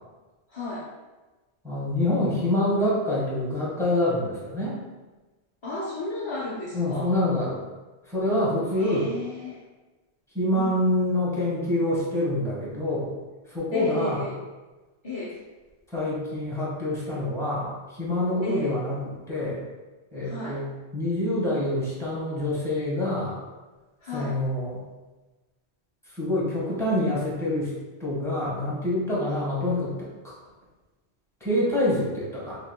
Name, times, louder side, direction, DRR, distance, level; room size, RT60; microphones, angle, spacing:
voice 1, 0.5-0.9 5.6-7.1 8.8-9.6 10.5-10.8 13.7-14.4 15.0-15.4 18.4-18.7 20.2-20.6 24.0-24.4, left 2 dB, 35° left, -7 dB, 0.6 m, -33 dB
voice 2, 1.6-4.8 6.7-7.6 8.1-9.1 10.3-13.1 13.5-14.2 15.9-19.6 20.1-23.4 24.1-24.8 26.1-27.7 28.0-30.1 31.4-32.6, left 1 dB, 5° left, -7 dB, 1.3 m, -26 dB
5.4 x 2.8 x 2.3 m, 1.2 s
omnidirectional pair, 1.1 m